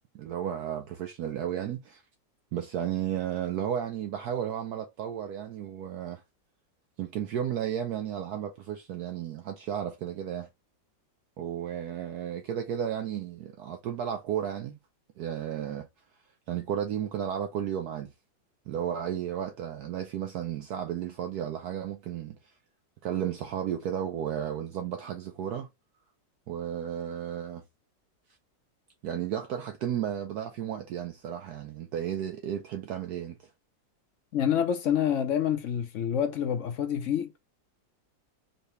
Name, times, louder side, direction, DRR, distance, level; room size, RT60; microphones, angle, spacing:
voice 1, 0.1-2.0 2.5-6.2 7.0-10.5 11.4-14.8 15.2-15.9 16.5-18.1 18.7-22.4 23.0-25.7 26.5-27.6 29.0-33.5, right 9 dB, 70° right, 1.0 m, -33 dB
voice 2, 34.3-37.3, left 9 dB, 65° left, 0.7 m, -27 dB
4.0 x 2.8 x 3.2 m
omnidirectional pair, 2.0 m